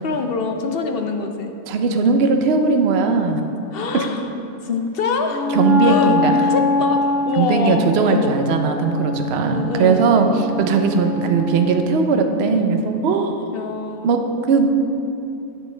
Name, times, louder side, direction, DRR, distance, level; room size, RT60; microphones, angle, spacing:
voice 1, 0.0-1.5 3.7-4.3 4.6-5.6 5.8-8.3 9.4-10.4 13.5-14.2, left 4 dB, 55° left, 5 dB, 0.6 m, -25 dB
voice 2, 1.7-3.4 3.9-4.0 5.5-6.3 7.4-13.4 14.0-14.9, right 4 dB, 55° right, 5 dB, 0.8 m, -18 dB
Wind instrument woodwind instrument, 5.3-12.0, left 3 dB, 10° right, 1.4 m, -23 dB
12.0 x 7.6 x 3.3 m, 2.7 s
omnidirectional pair, 1.6 m